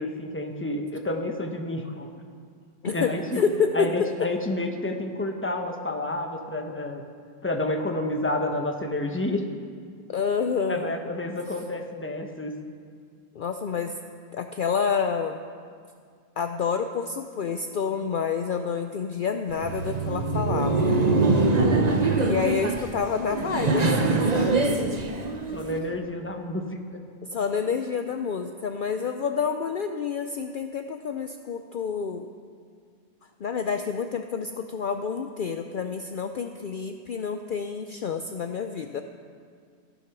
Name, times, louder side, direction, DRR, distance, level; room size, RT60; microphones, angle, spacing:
voice 1, 0.0-2.1 2.9-3.5 3.7-7.0 7.4-9.4 10.7-12.5 21.9-22.7 25.5-27.0, left 1 dB, 10° left, 3 dB, 1.1 m, -30 dB
voice 2, 2.8-3.9 10.1-10.9 13.3-13.9 14.3-15.4 16.4-21.0 22.2-24.8 27.3-32.3 33.4-39.0, left 6 dB, 55° left, 6 dB, 0.7 m, -28 dB
Laughter, 19.5-25.8, right 3 dB, 40° right, 1.0 m, -23 dB
15.5 x 11.0 x 6.0 m, 2.1 s
omnidirectional pair, 1.1 m